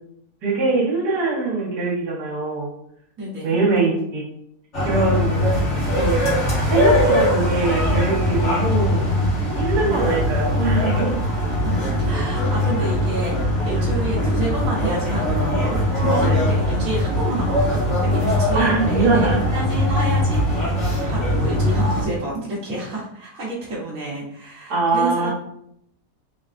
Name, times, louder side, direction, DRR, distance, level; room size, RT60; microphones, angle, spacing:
voice 1, 0.4-2.7 3.4-4.2 4.8-5.4 5.9-6.2 6.6-9.0 9.6-11.2 13.7-13.9 16.2-16.4 18.5-19.4 24.7-25.3, right 3 dB, 80° right, -5 dB, 1.8 m, -22 dB
voice 2, 3.2-3.6 4.8-5.3 11.6-11.7 12.1-13.4 13.7-25.3, right 2 dB, 60° right, -6 dB, 1.6 m, -29 dB
sound 1, 4.7-22.0, left 1 dB, 50° left, 1.9 m, -21 dB
sound 2, 10.0-15.9, left 1 dB, 85° left, 1.7 m, -34 dB
4.3 x 3.5 x 2.5 m, 0.70 s
omnidirectional pair, 1.7 m